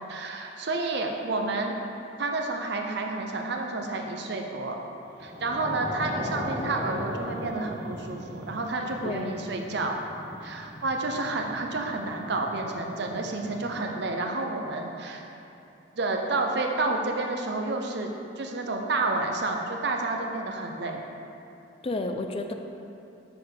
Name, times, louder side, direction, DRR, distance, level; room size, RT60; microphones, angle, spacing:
voice 1, 0.1-1.8 2.2-4.8 5.2-10.0 10.4-15.2 16.0-18.1 18.4-21.0, right 2 dB, 60° right, 2 dB, 0.7 m, -30 dB
sound 1, 5.1-13.9, left 1 dB, 60° left, 1.6 m, -38 dB
voice 2, 8.8-9.4 21.8-22.5, left 2 dB, 30° left, 4 dB, 0.4 m, -32 dB
6.7 x 4.1 x 6.6 m, 2.7 s
head